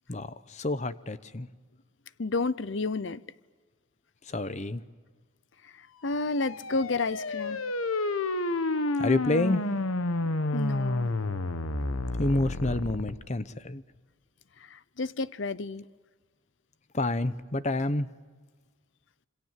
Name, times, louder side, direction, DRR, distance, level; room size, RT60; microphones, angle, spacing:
voice 1, 0.1-1.5 4.3-4.8 9.0-9.6 12.2-13.8 16.9-18.1, left 2 dB, 35° left, 0.9 m, -28 dB
voice 2, 2.2-3.2 5.6-7.6 10.5-11.1 14.6-15.8, left 3 dB, 60° left, 0.7 m, -31 dB
sound 1, 6.2-13.1, left 2 dB, 90° left, 1.2 m, -30 dB
27.0 x 26.0 x 7.5 m
head